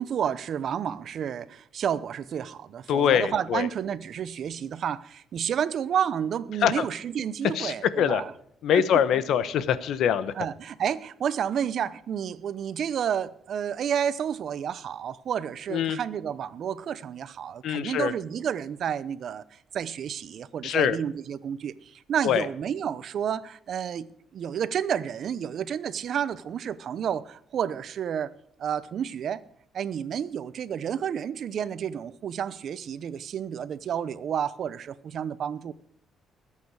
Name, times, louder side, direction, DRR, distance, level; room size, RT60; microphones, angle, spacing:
voice 1, 0.0-8.3 8.7-8.8 9.1-9.2 10.4-24.1 24.3-28.3 28.6-29.4 29.7-35.7, right 8 dB, 60° right, 0.8 m, -30 dB
voice 2, 2.9-3.7 6.6-6.8 7.5-8.2 8.6-10.3 15.7-16.0 17.6-18.1 20.6-21.0 22.2-22.4, left 9 dB, 75° left, 1.0 m, -24 dB
20.5 x 8.6 x 4.8 m
cardioid pair, 100°, 0 cm